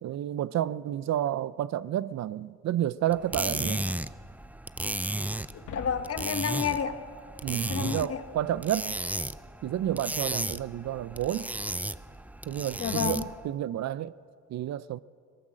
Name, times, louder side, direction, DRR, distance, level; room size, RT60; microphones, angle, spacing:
voice 1, 0.0-3.8 7.4-9.0 9.6-11.5 12.5-14.1 14.5-15.0, right 12 dB, 60° right, 0.5 m, -30 dB
sound 1, 3.1-13.4, right 1 dB, 5° right, 0.5 m, -34 dB
sound 2, 5.5-8.0, left 8 dB, 80° left, 1.4 m, -47 dB
voice 2, 5.7-7.0 7.7-8.2 12.8-13.2, left 7 dB, 50° left, 1.3 m, -30 dB
19.5 x 18.5 x 7.5 m
cardioid pair, 90°, 30 cm